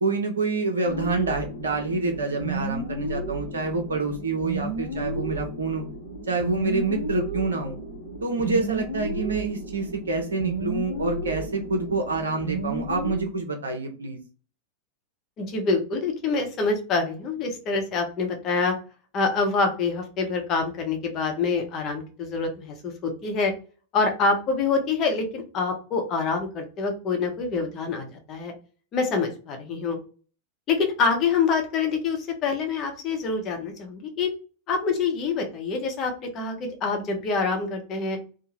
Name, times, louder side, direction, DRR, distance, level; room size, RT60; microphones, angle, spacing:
voice 1, 0.0-5.9 6.3-7.8 8.2-14.2, right 3 dB, 70° right, 4 dB, 0.5 m, -27 dB
sound 1, 0.8-13.2, right 2 dB, 85° left, 0.8 m, -33 dB
voice 2, 15.4-18.7 19.1-23.5 23.9-28.5 28.9-30.0 30.7-34.3 34.7-38.2, left 4 dB, 35° left, 3 dB, 0.7 m, -26 dB
2.7 x 2.0 x 2.9 m, 0.38 s
figure-of-eight pair, 90°, 0 cm